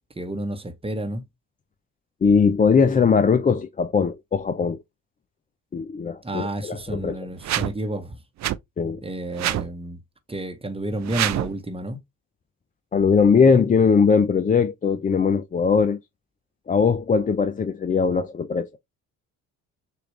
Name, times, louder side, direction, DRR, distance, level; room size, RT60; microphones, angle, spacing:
voice 1, 0.2-1.2 6.2-8.2 9.0-10.0 10.3-12.0, right 1 dB, 15° right, 1.0 m, -30 dB
voice 2, 2.2-4.8 5.7-7.2 8.8-9.0 12.9-16.0 16.7-18.7, left 5 dB, 20° left, 0.4 m, -20 dB
sound 1, 7.4-7.7 8.4-8.6 9.4-9.7 11.0-11.6, right 13 dB, 40° right, 0.4 m, -25 dB
6.8 x 2.4 x 3.1 m
hypercardioid pair, 55°, 43 cm